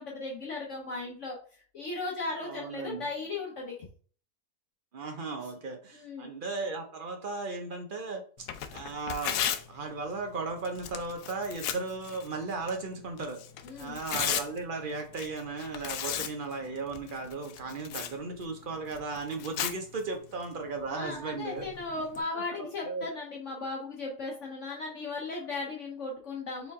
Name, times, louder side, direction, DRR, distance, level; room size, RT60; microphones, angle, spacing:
voice 1, 0.0-1.4 1.7-3.9 5.9-6.3 13.6-14.0 20.9-26.7, left 3 dB, 55° left, -2 dB, 1.1 m, -36 dB
voice 2, 2.4-3.1 4.9-8.5 8.7-13.4 13.8-21.7 22.3-23.1, right 3 dB, 60° right, 3 dB, 0.5 m, -36 dB
Tearing, 8.4-22.2, left 9 dB, 85° left, 1.1 m, -38 dB
4.4 x 3.3 x 3.5 m, 0.43 s
omnidirectional pair, 1.7 m